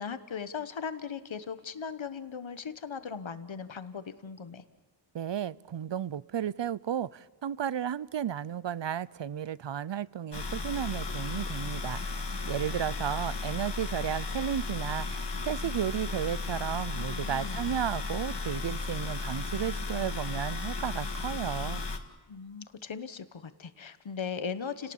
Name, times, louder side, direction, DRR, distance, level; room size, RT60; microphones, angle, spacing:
voice 1, 0.0-4.6 17.1-17.8 22.3-24.9, left 6 dB, 85° left, 1.2 m, -38 dB
voice 2, 5.1-12.2 12.5-21.8, right 9 dB, 70° right, 0.7 m, -33 dB
sound 1, 10.3-22.0, left 3 dB, 65° left, 2.0 m, -35 dB
29.5 x 18.5 x 7.2 m
wide cardioid pair, 50°, 45 cm